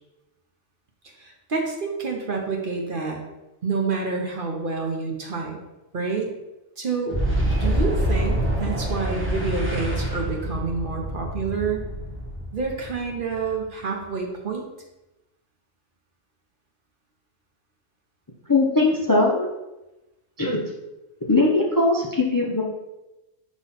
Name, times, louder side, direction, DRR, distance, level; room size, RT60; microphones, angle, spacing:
voice 1, 1.0-3.2 3.6-5.6 5.9-6.3 6.8-7.2 7.6-11.9 12.5-14.6, right 4 dB, 45° right, 1 dB, 0.9 m, -28 dB
Boom, 7.1-13.7, right 1 dB, 10° right, 1.0 m, -26 dB
voice 2, 18.5-19.5 20.4-20.6 21.3-22.6, left 2 dB, 25° left, -1 dB, 0.5 m, -20 dB
5.9 x 3.0 x 5.7 m, 0.99 s
omnidirectional pair, 1.3 m